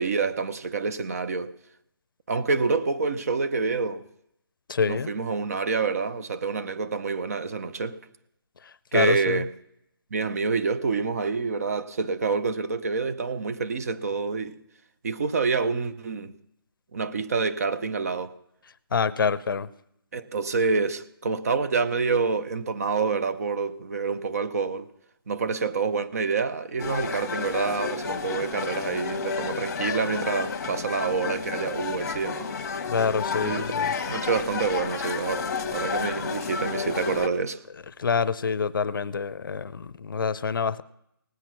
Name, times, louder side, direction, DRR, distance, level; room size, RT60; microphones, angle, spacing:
voice 1, 0.0-1.5 2.3-4.0 4.9-7.9 8.9-9.5 10.1-14.6 15.0-16.3 16.9-18.4 20.1-24.9 25.3-32.5 33.4-33.7 34.1-37.6, right 4 dB, 40° right, 0.7 m, -27 dB
voice 2, 4.7-5.1 8.6-9.4 18.9-19.7 32.9-33.9 38.0-40.8, left 5 dB, 60° left, 0.6 m, -26 dB
sound 1, 26.8-37.3, left 5 dB, 45° left, 1.2 m, -31 dB
18.5 x 8.1 x 6.1 m
hypercardioid pair, 170°, 13 cm